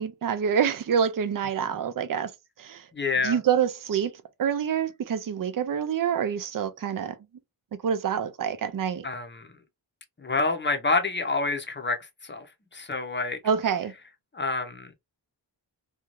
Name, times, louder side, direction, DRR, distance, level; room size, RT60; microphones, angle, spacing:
voice 1, 0.0-2.3 2.6-2.8 3.2-4.1 4.4-7.2 7.8-9.0 13.4-13.9, right 7 dB, 50° right, 0.5 m, -26 dB
voice 2, 2.9-3.4 9.0-9.5 10.2-12.0 12.2-12.5 12.7-13.4 14.3-14.9, left 3 dB, 25° left, 0.6 m, -27 dB
2.6 x 2.3 x 2.9 m
wide cardioid pair, 115°, 44 cm